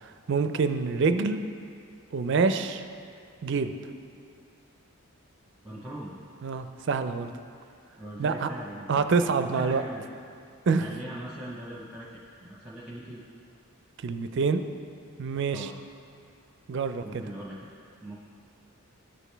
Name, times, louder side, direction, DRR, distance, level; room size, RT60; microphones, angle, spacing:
voice 1, 0.0-1.4 2.1-2.8 3.4-3.7 6.4-7.3 8.2-8.5 8.9-9.8 10.7-10.9 14.0-14.6 15.2-15.7 16.7-17.2, right 4 dB, 55° right, 9 dB, 0.4 m, -26 dB
voice 2, 5.6-6.2 7.6-7.7 8.0-9.0 9.4-10.1 10.8-13.2 15.5-15.7 17.0-17.7 18.0-18.2, right 1 dB, 5° right, -7 dB, 0.8 m, -40 dB
14.0 x 4.9 x 3.3 m, 2.4 s
head